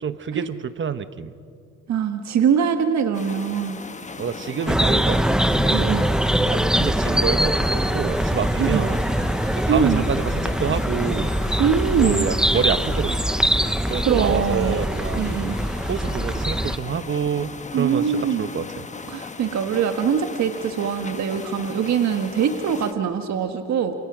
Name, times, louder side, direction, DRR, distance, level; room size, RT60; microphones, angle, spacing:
voice 1, 0.0-1.3 4.2-6.1 6.5-9.0 9.5-11.3 12.0-13.4 13.9-15.3 15.9-18.8, right 7 dB, 40° right, 12 dB, 1.1 m, -27 dB
voice 2, 1.9-3.8 5.7-6.0 8.6-8.8 9.7-10.0 11.6-12.3 14.0-14.8 15.2-15.6 17.7-18.5 19.1-23.9, right 7 dB, 65° right, 6 dB, 1.6 m, -22 dB
sound 1, 3.1-22.9, left 4 dB, 25° left, 1.2 m, -38 dB
sound 2, 4.7-16.8, right 1 dB, ahead, 0.8 m, -22 dB
28.0 x 28.0 x 6.2 m, 2.5 s
cardioid pair, 90°, 30 cm